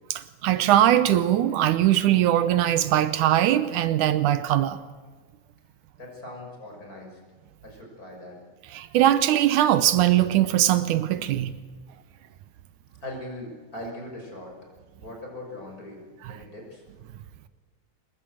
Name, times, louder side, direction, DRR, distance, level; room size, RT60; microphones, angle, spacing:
voice 1, 0.4-4.8 8.7-11.5, right 12 dB, 80° right, 2.3 m, -21 dB
voice 2, 6.0-7.2 7.6-8.4 13.0-14.5 15.0-16.0 16.3-16.8, left 1 dB, 25° left, 6.5 m, -40 dB
25.0 x 21.0 x 7.9 m
omnidirectional pair, 3.5 m